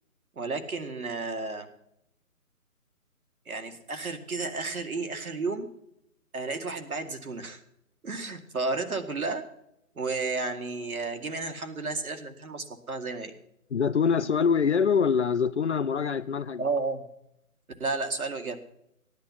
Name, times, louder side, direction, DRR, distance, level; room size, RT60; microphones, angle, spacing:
voice 1, 0.4-1.7 3.5-5.7 6.3-7.6 8.0-9.4 10.0-13.4 16.6-17.1 17.8-18.6, right 3 dB, 70° right, 2.1 m, -32 dB
voice 2, 13.7-16.6, left 6 dB, 50° left, 0.7 m, -24 dB
15.5 x 10.5 x 5.8 m
figure-of-eight pair, 145°, 44 cm